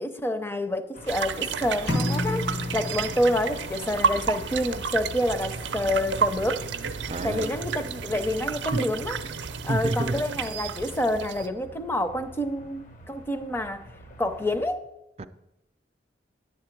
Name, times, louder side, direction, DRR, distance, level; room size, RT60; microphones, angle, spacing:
voice 1, 0.0-6.7 7.2-9.2 9.6-13.9 14.2-14.8, left 1 dB, 15° left, 0.5 m, -28 dB
sound 1, 0.9-14.7, left 1 dB, 45° left, 0.8 m, -47 dB
sound 2, 1.1-11.5, right 6 dB, 85° right, 0.5 m, -31 dB
sound 3, 1.9-3.8, left 1 dB, 70° left, 1.4 m, -29 dB
voice 2, 7.1-7.5 8.7-8.9 9.7-10.2 15.2-15.3, right 2 dB, 35° right, 0.4 m, -28 dB
10.0 x 7.6 x 4.5 m
head